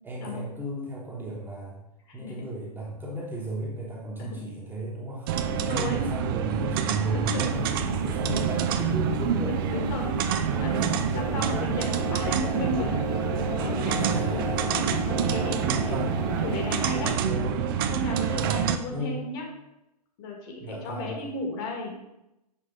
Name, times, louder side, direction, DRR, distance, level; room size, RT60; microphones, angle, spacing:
voice 1, 0.0-1.8 2.1-9.9 10.4-10.6 11.3-11.5 14.0-14.6 15.8-16.2 17.0-17.7 18.4-19.3 20.6-21.1, right 1 dB, 10° right, -4 dB, 1.2 m, -34 dB
voice 2, 2.1-2.5 4.2-4.4 5.5-6.1 7.1-7.5 9.2-9.3 9.7-13.0 13.3-14.1 14.8-16.0 16.4-17.1 17.9-19.5 20.2-21.9, left 1 dB, 35° left, 1 dB, 1.7 m, -34 dB
sound 1, 5.3-18.8, right 7 dB, 35° right, 0.5 m, -27 dB
sound 2, 7.5-17.2, left 6 dB, 75° left, 0.5 m, -36 dB
6.0 x 4.7 x 5.2 m, 0.90 s
figure-of-eight pair, 115°, 21 cm